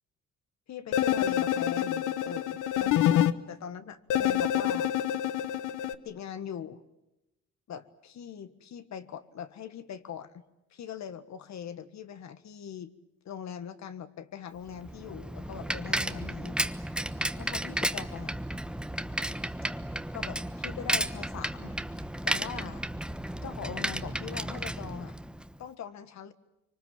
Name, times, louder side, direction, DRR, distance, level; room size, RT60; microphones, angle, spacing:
voice 1, 0.7-4.9 6.0-6.8 7.7-10.4 10.7-12.9 13.2-16.6 17.4-18.4 20.1-21.8 22.2-22.8 23.4-25.2 25.6-26.3, left 8 dB, 65° left, 11 dB, 1.6 m, -41 dB
sound 1, 0.9-3.3 4.1-5.9, left 11 dB, 90° left, 1.0 m, -27 dB
Bicycle, 14.7-25.6, right 1 dB, 5° right, 1.1 m, -33 dB
25.0 x 24.0 x 9.2 m, 0.94 s
cardioid pair, 90°, 30 cm